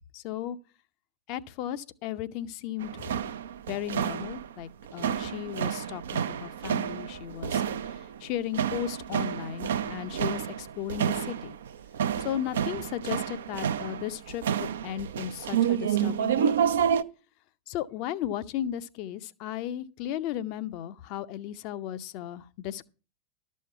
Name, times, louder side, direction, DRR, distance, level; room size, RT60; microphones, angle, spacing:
voice 1, 0.1-0.6 1.3-3.2 3.7-11.6 12.2-16.5 17.7-22.9, left 11 dB, 45° left, 0.7 m, -35 dB
sound 1, 2.8-17.0, right 9 dB, 60° right, 0.5 m, -29 dB
12.5 x 6.4 x 5.7 m
figure-of-eight pair, 90°, 0 cm